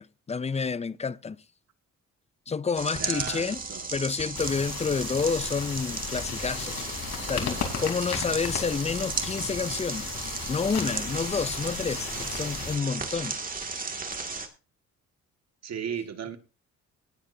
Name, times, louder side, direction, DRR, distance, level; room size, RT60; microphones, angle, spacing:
voice 1, 0.0-1.4 2.5-3.6 3.9-6.8 7.2-10.1 10.5-13.4, left 5 dB, 20° left, 0.5 m, -29 dB
sound 1, 2.7-14.5, right 4 dB, 30° right, 2.3 m, -35 dB
voice 2, 3.0-3.9 15.6-16.4, right 8 dB, 60° right, 1.9 m, -35 dB
sound 2, 4.4-12.7, left 5 dB, 60° left, 3.8 m, -36 dB
19.0 x 8.9 x 2.8 m
cardioid pair, 90°, 30 cm